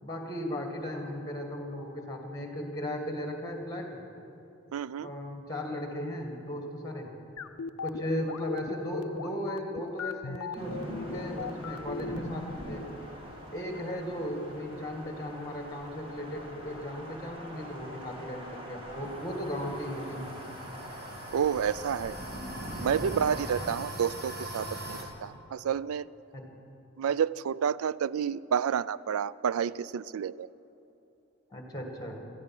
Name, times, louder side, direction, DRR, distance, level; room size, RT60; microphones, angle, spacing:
voice 1, 0.0-3.9 5.0-7.1 7.8-12.8 13.5-20.3 23.0-23.2 25.3-25.4 26.3-26.5 31.5-32.2, equal, 15° left, 3 dB, 2.0 m, -36 dB
voice 2, 4.7-5.1 21.3-22.2 22.8-26.0 27.0-30.5, right 8 dB, 85° right, 19 dB, 0.4 m, -30 dB
sound 1, 7.4-12.6, left 6 dB, 85° left, 0.5 m, -37 dB
sound 2, 10.5-23.7, equal, 25° right, 1.8 m, -42 dB
sound 3, 19.1-25.0, right 1 dB, 45° right, 1.9 m, -42 dB
17.0 x 14.0 x 6.1 m, 3.0 s
head